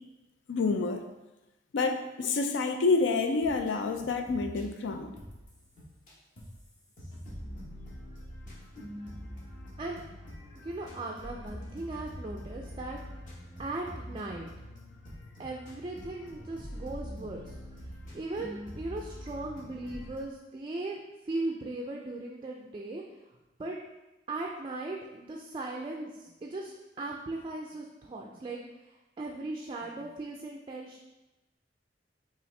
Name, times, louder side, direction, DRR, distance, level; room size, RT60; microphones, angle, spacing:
voice 1, 0.5-1.0 1.7-5.1, left 4 dB, 80° left, 6 dB, 0.4 m, -28 dB
sound 1, 3.4-6.1 6.4-6.6 7.0-20.2, equal, 45° left, 1.0 m, -45 dB
voice 2, 10.6-13.0 13.6-14.5 15.4-17.5 18.1-21.0 21.3-23.0 23.6-23.8 24.3-28.6 29.2-31.0, right 2 dB, 25° right, 0 dB, 0.3 m, -38 dB
5.4 x 2.5 x 3.2 m, 1.0 s
head